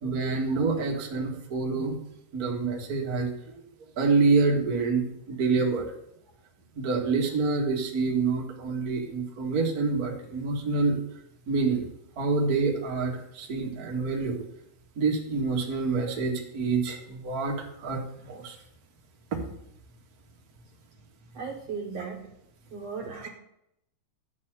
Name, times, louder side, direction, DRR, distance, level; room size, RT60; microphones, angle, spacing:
voice 1, 0.0-2.0 2.3-3.6 4.0-5.9 6.7-11.0 11.5-11.9 12.2-14.4 14.9-18.5 19.3-19.4, right 4 dB, 40° right, -1 dB, 1.5 m, -27 dB
voice 2, 21.3-22.2 22.7-23.3, right 5 dB, 55° right, 0 dB, 2.0 m, -36 dB
10.5 x 4.2 x 7.8 m, 0.77 s
omnidirectional pair, 4.1 m